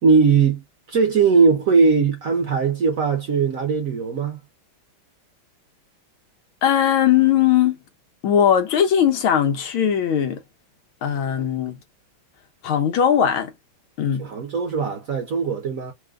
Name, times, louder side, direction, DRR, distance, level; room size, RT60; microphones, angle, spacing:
voice 1, 0.0-4.4 14.2-15.9, right 5 dB, 55° right, 1.0 m, -19 dB
voice 2, 6.6-7.8 8.2-10.4 11.0-11.8 12.6-13.5 14.0-14.3, left 9 dB, 80° left, 1.8 m, -19 dB
4.8 x 2.2 x 3.6 m
omnidirectional pair, 2.2 m